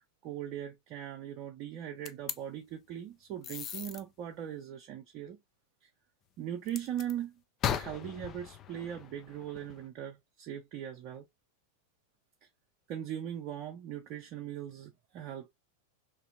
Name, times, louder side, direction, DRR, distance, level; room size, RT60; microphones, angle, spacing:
voice 1, 0.2-5.4 5.8-5.9 6.4-7.4 7.7-11.2 12.4-12.5 12.9-15.5, right 10 dB, 40° right, 0.5 m, -40 dB
sound 1, 2.0-2.4 3.4-4.0 6.7-7.1 7.6-9.8, left 9 dB, 30° left, 0.3 m, -37 dB
2.9 x 2.6 x 2.5 m
figure-of-eight pair, 90°, 0 cm